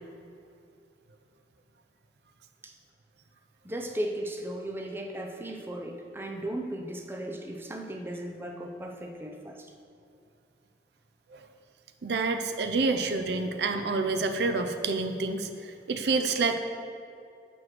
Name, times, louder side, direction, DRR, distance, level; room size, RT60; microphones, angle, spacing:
voice 1, 3.6-9.7 12.8-13.0, right 1 dB, 15° right, 2 dB, 0.5 m, -36 dB
voice 2, 12.0-16.6, right 3 dB, 65° right, 7 dB, 0.5 m, -28 dB
6.1 x 4.9 x 5.8 m, 2.4 s
head